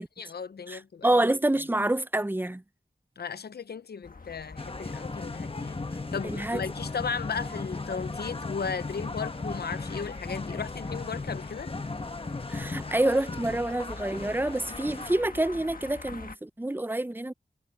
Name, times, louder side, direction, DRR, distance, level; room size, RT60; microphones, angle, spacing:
voice 1, 0.0-1.1 3.2-11.7, left 6 dB, 85° left, 0.6 m, -36 dB
voice 2, 0.7-2.6 6.2-6.6 12.5-17.3, right 1 dB, 10° right, 0.6 m, -27 dB
sound 1, 4.0-16.4, left 4 dB, 60° left, 1.5 m, -46 dB
sound 2, 4.6-15.1, left 3 dB, 35° left, 1.1 m, -36 dB
cardioid pair, 45°, 16 cm